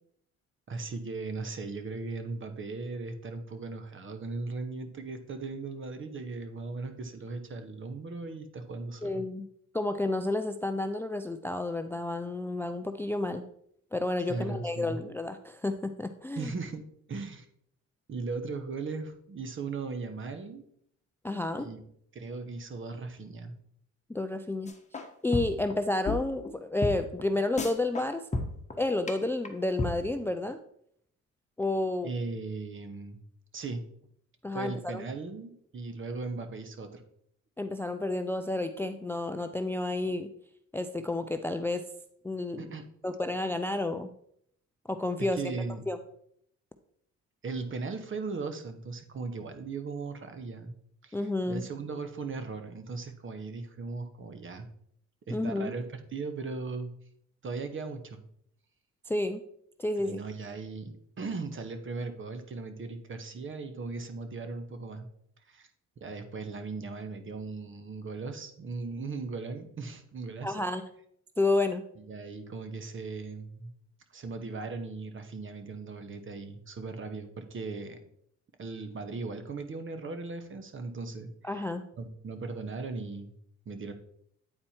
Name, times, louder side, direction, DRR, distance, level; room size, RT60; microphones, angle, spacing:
voice 1, 0.7-9.2 14.3-15.0 16.4-16.8 17.1-17.5 18.1-20.6 21.6-21.8 22.1-23.5 32.0-33.2 33.5-33.8 34.5-37.0 42.6-42.8 45.3-45.8 47.4-50.8 51.0-51.2 51.5-54.7 55.3-56.9 57.4-58.2 60.0-65.1 65.5-65.7 66.0-70.7 72.0-73.7 74.1-78.0 78.6-81.6 82.0-83.3 83.7-83.9, right 4 dB, 40° right, 8 dB, 1.1 m, -38 dB
voice 2, 9.0-9.5 9.7-13.4 13.9-16.5 21.2-21.7 24.1-24.7 25.2-28.2 28.8-30.6 31.6-32.1 34.4-35.0 37.6-40.3 40.7-41.8 42.2-42.7 43.0-44.1 44.9-45.5 45.9-46.0 51.1-51.6 55.3-55.7 59.1-59.4 59.8-60.2 70.4-70.8 71.4-71.8 81.4-81.8, left 2 dB, 10° left, 9 dB, 0.4 m, -30 dB
sound 1, 24.7-25.1 25.3-25.7 26.0-26.1 26.4-26.5 26.8-26.9 27.2-27.3 27.6-28.1 28.3-28.7 29.1-29.2 29.4-29.5 29.8-29.9, left 2 dB, 25° left, 1.1 m, -31 dB
8.8 x 4.3 x 4.3 m, 0.69 s
cardioid pair, 90°, 30 cm